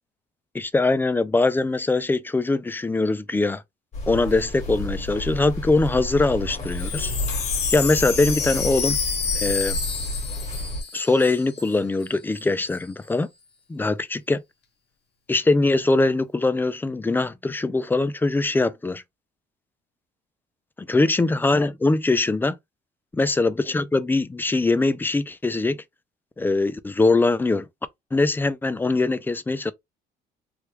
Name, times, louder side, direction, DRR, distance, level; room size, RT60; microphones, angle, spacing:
voice 1, 0.5-3.6 4.1-7.1 7.7-9.0 9.3-9.8 10.9-13.3 13.7-14.4 15.3-19.0 20.8-22.6 23.2-25.8 26.4-27.7 28.1-29.7, left 3 dB, 10° left, 0.3 m, -22 dB
sound 1, 3.9-10.8, left 1 dB, 40° left, 1.7 m, -31 dB
Wind chime, 6.5-11.8 12.0-12.1 12.3-12.8, left 6 dB, 75° left, 0.9 m, -29 dB
3.2 x 2.2 x 3.2 m
cardioid pair, 110°, 17 cm